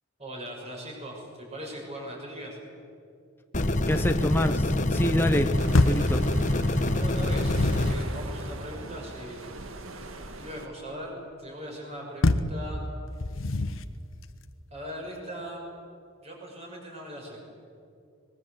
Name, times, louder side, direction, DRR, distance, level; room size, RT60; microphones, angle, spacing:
voice 1, 0.2-2.6 6.8-9.4 10.4-12.8 13.3-13.7 14.7-15.6 16.2-17.4, equal, 30° right, 0 dB, 6.6 m, -40 dB
sound 1, 3.5-7.9, left 1 dB, 35° left, 1.2 m, -26 dB
voice 2, 3.9-5.6 5.8-6.3, left 1 dB, 10° left, 6 dB, 1.0 m, -27 dB
sound 2, 5.6-10.7, right 2 dB, 80° right, 1.9 m, -41 dB
sound 3, 5.7-6.1 7.0-8.1 12.2-12.6 13.2-13.9, left 2 dB, 75° left, 0.9 m, -25 dB
24.5 x 21.0 x 8.2 m, 2.5 s
head